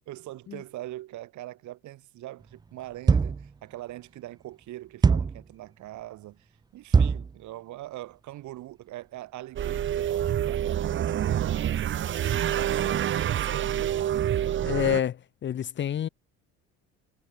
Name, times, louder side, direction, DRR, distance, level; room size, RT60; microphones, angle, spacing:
voice 1, 0.1-14.2, right 16 dB, 65° right, 6.2 m, -42 dB
sound 1, 3.1-3.5 5.0-5.4 6.9-7.3, right 5 dB, 15° right, 0.3 m, -21 dB
sound 2, 9.6-15.0, right 10 dB, 40° right, 0.9 m, -27 dB
voice 2, 14.6-16.1, left 9 dB, 35° left, 0.8 m, -28 dB
cardioid pair, 110°, 31 cm